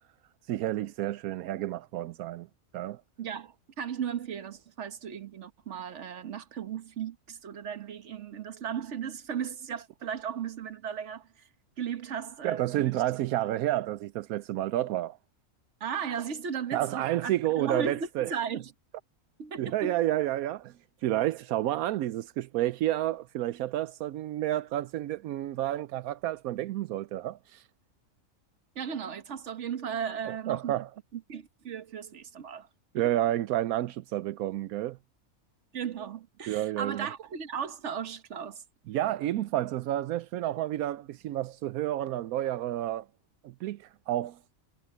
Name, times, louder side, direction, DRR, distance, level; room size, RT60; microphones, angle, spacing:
voice 1, 0.5-2.5 2.7-3.0 12.4-15.2 16.7-18.3 19.6-20.8 21.0-27.6 30.3-30.9 32.9-35.0 36.5-37.1 38.9-43.1 43.4-44.4, right 14 dB, 85° right, 1.0 m, -30 dB
voice 2, 3.2-11.5 11.8-12.9 15.8-18.7 19.4-20.0 28.7-30.8 31.1-32.7 35.7-38.6, right 7 dB, 55° right, 1.4 m, -36 dB
omnidirectional pair, 1.5 m